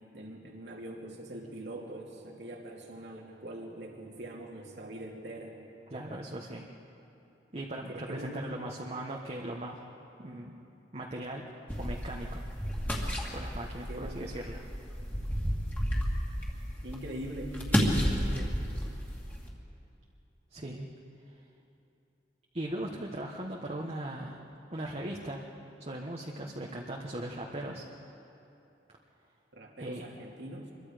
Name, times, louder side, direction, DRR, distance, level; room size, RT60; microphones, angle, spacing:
voice 1, 0.1-5.6 7.9-8.6 13.9-14.5 16.8-18.6 29.5-30.7, right 1 dB, 75° right, -1 dB, 2.6 m, -42 dB
voice 2, 5.9-6.6 7.5-9.8 10.2-10.5 10.9-12.4 13.3-14.6 20.5-20.9 22.5-24.4 24.7-25.4 25.8-27.8 29.8-30.0, right 1 dB, 35° right, -1 dB, 1.3 m, -39 dB
sound 1, 11.7-19.5, equal, 10° left, 2.4 m, -32 dB
26.0 x 23.0 x 5.1 m, 2.9 s
head